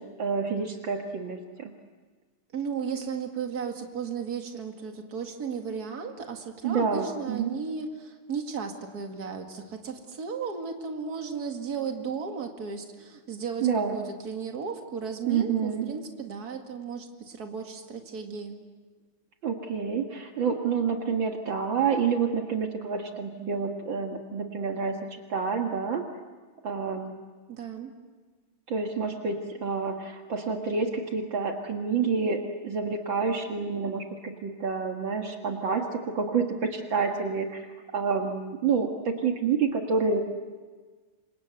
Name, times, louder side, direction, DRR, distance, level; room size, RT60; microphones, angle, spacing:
voice 1, 0.0-1.7 6.6-7.5 13.6-13.9 15.3-15.9 19.4-25.0 25.3-26.0 26.6-27.1 28.7-37.7 37.9-40.2, right 5 dB, 70° right, 3 dB, 2.4 m, -28 dB
voice 2, 2.5-18.6 27.5-27.9, right 6 dB, 50° right, 3 dB, 2.6 m, -35 dB
28.0 x 25.0 x 8.0 m, 1.4 s
omnidirectional pair, 2.2 m